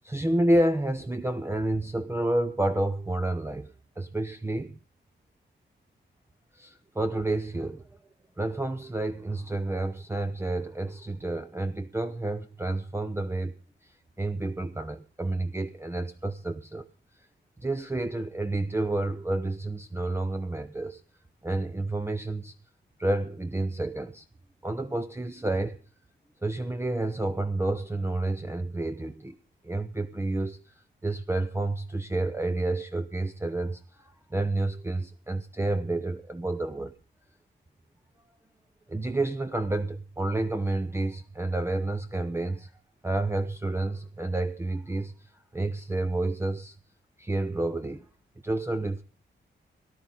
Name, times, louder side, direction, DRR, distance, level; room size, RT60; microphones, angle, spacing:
voice 1, 0.0-4.8 6.6-7.8 8.4-13.5 14.2-16.9 17.6-21.0 21.4-22.5 23.0-24.2 24.6-25.8 26.4-29.4 29.6-30.6 31.0-33.8 34.3-36.9 38.9-42.7 43.0-45.1 45.5-46.7 47.2-48.0 48.4-49.0, right 2 dB, 10° right, 0.7 m, -29 dB
18.0 x 12.0 x 3.8 m
wide cardioid pair, 140°, 20 cm